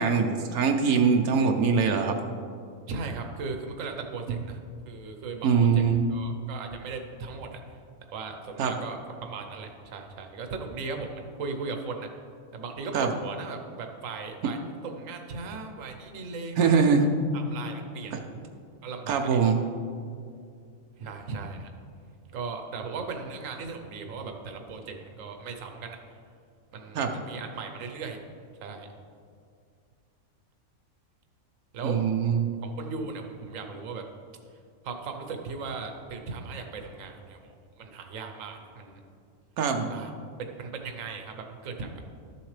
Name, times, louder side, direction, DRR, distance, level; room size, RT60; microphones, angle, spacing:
voice 1, 0.0-2.2 5.4-6.1 8.6-8.7 12.9-13.1 16.6-17.1 18.1-18.2 19.1-19.6 26.9-27.1 31.8-32.5 39.6-39.9, right 5 dB, 85° right, 3 dB, 1.2 m, -23 dB
voice 2, 2.9-4.6 4.9-5.8 6.1-7.6 8.1-12.1 12.5-17.0 17.3-18.2 18.8-19.4 21.0-21.7 22.3-26.0 26.7-28.2 28.6-28.9 31.7-32.0 32.6-34.0 34.8-39.0 39.9-40.1 40.4-42.0, right 4 dB, 70° right, 4 dB, 1.2 m, -37 dB
13.0 x 7.2 x 3.2 m, 2.3 s
omnidirectional pair, 1.5 m